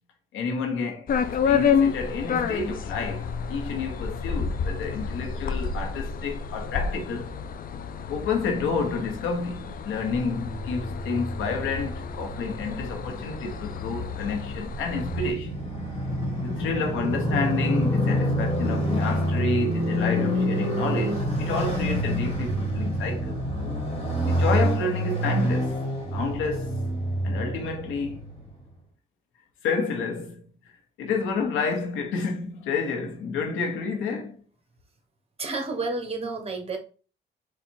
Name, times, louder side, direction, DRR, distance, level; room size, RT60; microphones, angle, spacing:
voice 1, 0.3-7.4 8.1-15.6 16.4-23.4 24.2-25.8 26.1-26.7 27.2-28.2 29.6-30.7 31.0-34.4, left 4 dB, 90° left, 1.1 m, -30 dB
sound 1, 1.1-15.3, left 6 dB, 45° left, 0.5 m, -30 dB
Motorcycle, 10.4-28.5, equal, 30° left, 1.7 m, -28 dB
voice 2, 35.4-36.8, right 3 dB, 30° right, 1.3 m, -30 dB
4.1 x 2.5 x 4.4 m
cardioid pair, 90°, 20 cm